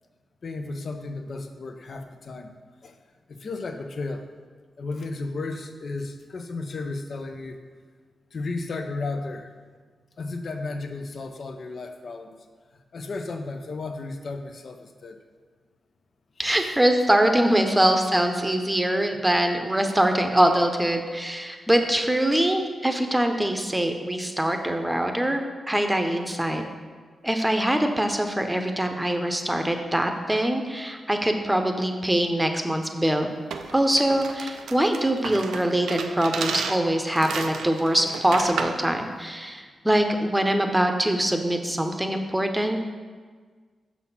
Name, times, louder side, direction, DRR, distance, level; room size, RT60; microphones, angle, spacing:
voice 1, 0.4-2.5 2.8-2.9 3.3-4.3 4.8-7.6 8.3-9.5 10.2-12.4 12.9-15.2 16.4-16.8 17.8-17.9, left 3 dB, 60° left, 5 dB, 0.6 m, -34 dB
voice 2, 16.4-26.7 27.2-33.3 33.7-42.8, right 1 dB, 10° right, 5 dB, 0.8 m, -23 dB
sound 1, 33.5-38.8, right 6 dB, 85° right, 0.4 m, -33 dB
6.1 x 4.2 x 5.6 m, 1.5 s
cardioid pair, 55°, 0 cm